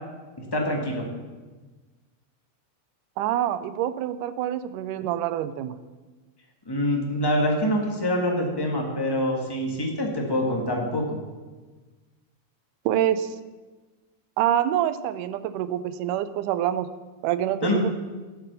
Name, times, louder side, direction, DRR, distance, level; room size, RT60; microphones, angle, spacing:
voice 1, 0.4-1.1 6.6-11.2 17.6-17.8, left 1 dB, 15° left, 1 dB, 0.7 m, -25 dB
voice 2, 3.2-5.7 12.9-13.4 14.4-16.9 17.2-17.9, right 11 dB, 90° right, 13 dB, 2.2 m, -26 dB
13.0 x 7.9 x 6.8 m, 1.3 s
omnidirectional pair, 3.6 m